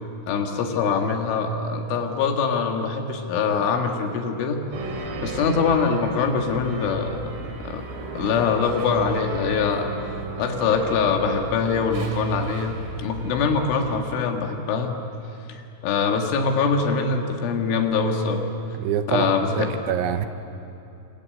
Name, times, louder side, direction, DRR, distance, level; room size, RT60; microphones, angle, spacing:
voice 1, 0.3-4.6 4.9-7.8 8.1-9.9 10.4-14.9 15.5-18.5 19.1-19.7, left 5 dB, 75° left, 3 dB, 4.4 m, -23 dB
sound 1, 4.7-14.0, right 3 dB, 60° right, 4.7 m, -35 dB
voice 2, 18.8-20.3, right 9 dB, 75° right, 8 dB, 3.1 m, -25 dB
29.0 x 25.0 x 7.9 m, 2.8 s
omnidirectional pair, 5.7 m